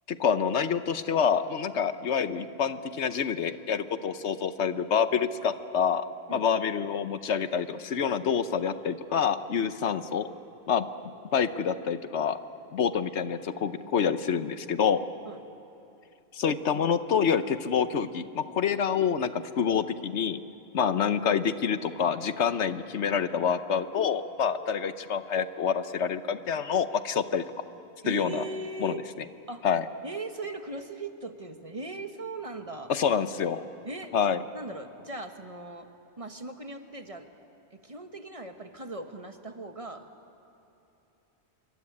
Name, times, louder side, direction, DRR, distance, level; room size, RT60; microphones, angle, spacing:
voice 1, 0.1-6.0 6.3-10.3 10.7-10.9 11.3-12.4 12.7-15.0 16.3-20.4 20.7-27.4 28.1-28.4 28.8-28.9 29.6-29.8 32.9-33.6 34.1-34.4, left 7 dB, 80° left, 12 dB, 1.2 m, -27 dB
voice 2, 28.0-29.0 29.5-29.6 30.0-32.9 33.8-34.1 34.5-35.9 36.2-37.3 37.7-40.1, right 2 dB, 30° right, 6 dB, 1.3 m, -39 dB
27.0 x 23.5 x 8.6 m, 2.9 s
omnidirectional pair, 1.2 m